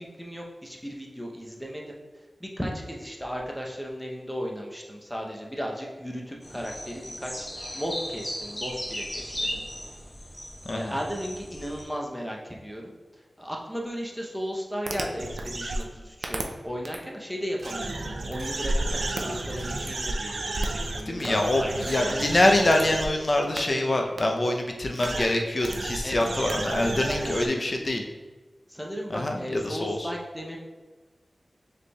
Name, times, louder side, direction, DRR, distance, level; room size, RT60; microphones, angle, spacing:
voice 1, 0.2-2.0 2.4-7.5 7.7-9.6 10.7-12.9 13.4-20.5 20.9-22.2 26.0-26.3 26.9-27.7 28.7-30.6, equal, ahead, -1 dB, 0.6 m, -35 dB
sound 1, 6.4-11.8, equal, 20° left, 1.0 m, -36 dB
voice 2, 10.6-11.0 20.6-20.7 21.1-28.0 29.1-30.1, left 1 dB, 40° left, 2 dB, 0.5 m, -25 dB
sound 2, 14.9-15.8 16.2-16.4 16.9-17.0 17.6-23.1 23.6-23.7 24.2-24.3 24.9-25.2 25.6-27.5, right 2 dB, 75° right, 0.4 m, -31 dB
6.4 x 3.3 x 2.3 m, 1.3 s
wide cardioid pair, 90°, 0 cm